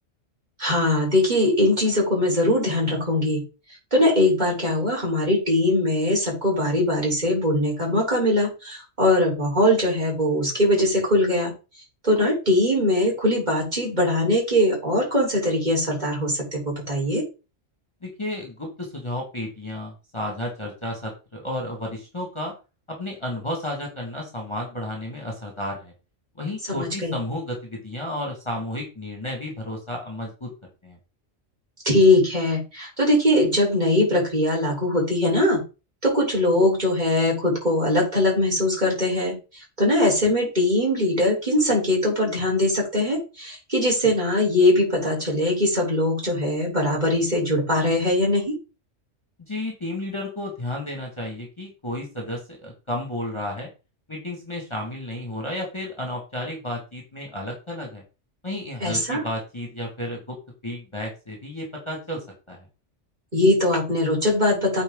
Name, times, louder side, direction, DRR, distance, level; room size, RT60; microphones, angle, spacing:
voice 1, 0.6-3.4 3.9-11.5 12.0-17.2 26.7-27.2 31.8-35.6 36.0-48.5 58.8-59.2 63.3-64.8, left 1 dB, 35° right, -2 dB, 4.3 m, -21 dB
voice 2, 18.0-22.5 22.9-25.9 26.4-30.5 30.8-31.0 49.5-53.7 54.1-58.0 58.4-60.4 60.6-62.7, left 1 dB, 20° left, 0 dB, 2.0 m, -32 dB
8.8 x 4.8 x 3.8 m, 0.31 s
omnidirectional pair, 1.3 m